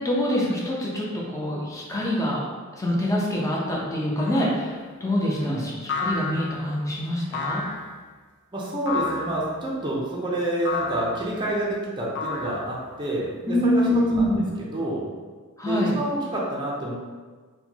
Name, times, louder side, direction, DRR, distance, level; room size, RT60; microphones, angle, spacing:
voice 1, 0.0-2.4 2.7-7.6 13.5-14.4 15.6-15.9, equal, 15° left, -4 dB, 0.6 m, -25 dB
sound 1, 4.2-4.6 5.9-6.7 7.3-7.9 8.9-9.4 10.7-11.2 12.2-12.9, left 4 dB, 55° left, 0.5 m, -30 dB
voice 2, 8.5-14.4 14.7-15.1 15.6-17.0, right 1 dB, 20° right, -5 dB, 0.5 m, -28 dB
4.4 x 2.2 x 2.8 m, 1.4 s
head